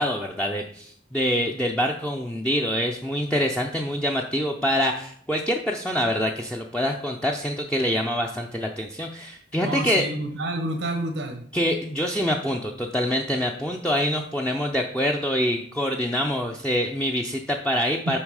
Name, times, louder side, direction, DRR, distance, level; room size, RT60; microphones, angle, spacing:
voice 1, 0.0-10.0 11.5-18.2, equal, 5° left, 1 dB, 0.5 m, -25 dB
voice 2, 9.6-11.4 18.1-18.2, right 1 dB, 90° right, 5 dB, 1.0 m, -29 dB
8.8 x 5.6 x 4.8 m, 0.63 s
head